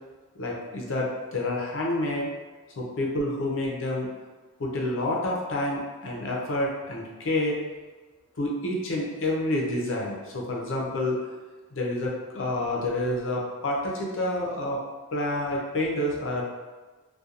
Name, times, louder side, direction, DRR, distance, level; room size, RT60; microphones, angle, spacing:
voice 1, 0.4-2.3 2.8-4.1 4.6-7.6 8.4-11.2 11.7-14.8 15.1-16.4, left 1 dB, 70° left, -2 dB, 0.5 m, -28 dB
2.8 x 2.2 x 2.4 m, 1.3 s
head